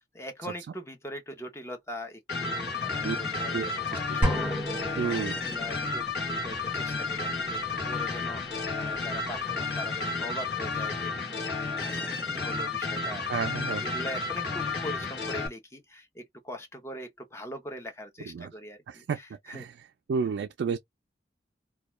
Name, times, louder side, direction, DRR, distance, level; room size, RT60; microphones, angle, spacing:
voice 1, 0.1-19.7, left 1 dB, 15° left, 0.6 m, -42 dB
sound 1, 2.3-15.5, left 4 dB, 65° left, 0.9 m, -32 dB
sound 2, 4.2-5.9, equal, 5° right, 1.1 m, -30 dB
voice 2, 5.0-5.3 13.3-13.8 18.3-18.5 18.9-19.2 19.5-19.7 20.1-20.8, right 6 dB, 80° right, 0.3 m, -30 dB
2.2 x 2.2 x 3.0 m
head